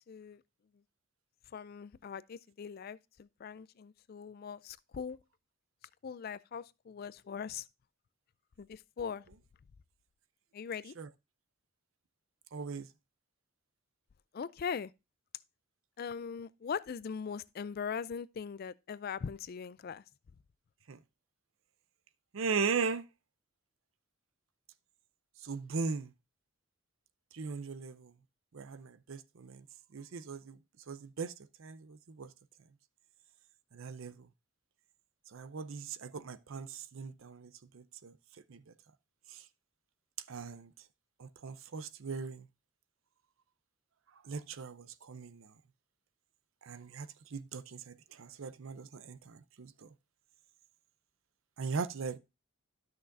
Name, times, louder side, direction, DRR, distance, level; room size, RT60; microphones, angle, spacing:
voice 1, 0.1-0.4 1.5-5.2 6.0-7.7 8.6-9.2 10.5-10.9 14.3-14.9 16.0-20.0, left 6 dB, 45° left, 0.3 m, -40 dB
voice 2, 12.5-12.9 20.9-21.0 22.3-23.0 25.4-26.1 27.3-28.1 28.5-29.6 29.9-30.6 30.9-31.3 31.6-32.3 33.7-34.1 35.3-38.1 38.5-38.6 40.3-40.7 41.2-42.5 44.3-45.5 46.6-49.7 51.6-52.2, right 5 dB, 65° right, 0.5 m, -38 dB
12.5 x 6.1 x 2.5 m
head